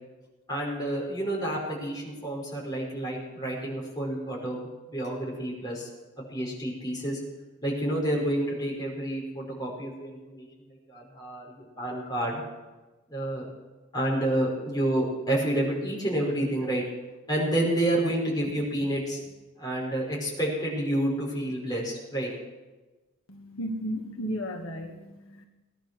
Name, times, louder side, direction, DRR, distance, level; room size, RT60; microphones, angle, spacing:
voice 1, 0.5-5.9 6.3-7.2 7.6-10.5 10.9-12.4 13.1-13.5 13.9-16.8 17.3-19.2 19.6-22.3, right 1 dB, 20° left, -4 dB, 5.3 m, -29 dB
voice 2, 23.3-25.5, equal, 75° left, 3 dB, 1.5 m, -34 dB
19.5 x 11.5 x 6.2 m, 1.2 s
head